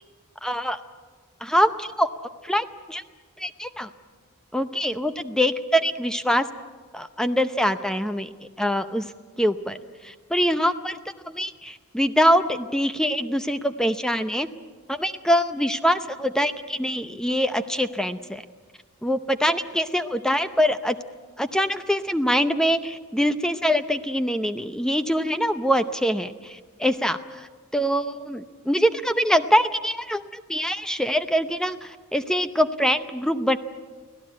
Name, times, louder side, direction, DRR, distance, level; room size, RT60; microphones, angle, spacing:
voice 1, 0.4-0.8 1.4-2.1 2.4-3.0 3.4-3.9 4.5-6.5 6.9-9.1 9.4-9.8 10.0-11.0 11.3-14.5 14.9-18.4 19.0-20.9 21.4-33.6, equal, 5° left, 10 dB, 0.6 m, -24 dB
25.0 x 16.5 x 8.8 m, 1.4 s
head